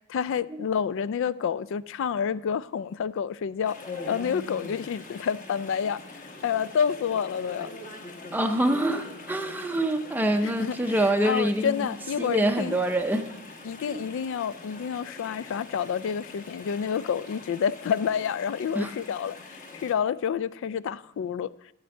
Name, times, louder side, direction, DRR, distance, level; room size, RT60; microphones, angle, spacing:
voice 1, 0.1-3.8 4.1-6.0 6.4-7.7 10.4-12.8 13.6-21.5, left 7 dB, 60° left, 0.3 m, -29 dB
Chatter / Stream, 3.6-19.9, left 2 dB, 35° left, 1.1 m, -43 dB
voice 2, 8.3-11.9 12.2-13.3 13.9-14.0 18.8-18.9, right 1 dB, 10° right, 0.5 m, -25 dB
12.0 x 4.4 x 7.5 m
head